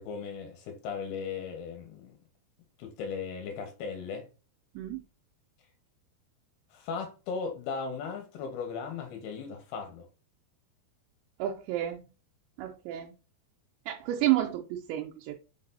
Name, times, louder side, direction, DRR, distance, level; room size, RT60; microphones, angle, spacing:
voice 1, 0.0-2.1 2.8-4.3 6.7-10.1, left 5 dB, 75° left, 2.9 m, -37 dB
voice 2, 11.4-12.0 12.6-13.1 13.9-15.4, right 14 dB, 90° right, 2.9 m, -30 dB
6.5 x 6.3 x 2.7 m
omnidirectional pair, 5.0 m